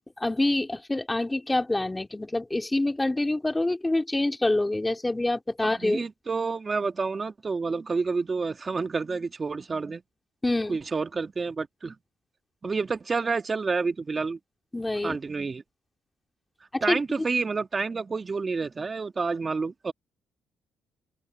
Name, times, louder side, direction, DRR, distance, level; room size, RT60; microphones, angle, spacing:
voice 1, 0.2-6.0 10.4-10.8 14.7-15.2 16.7-17.0, left 2 dB, 15° left, 2.4 m, -26 dB
voice 2, 5.6-10.0 10.7-11.9 12.6-14.4 15.0-15.6 16.8-19.9, right 4 dB, 30° right, 1.6 m, -29 dB
open air
cardioid pair, 90°, 0 cm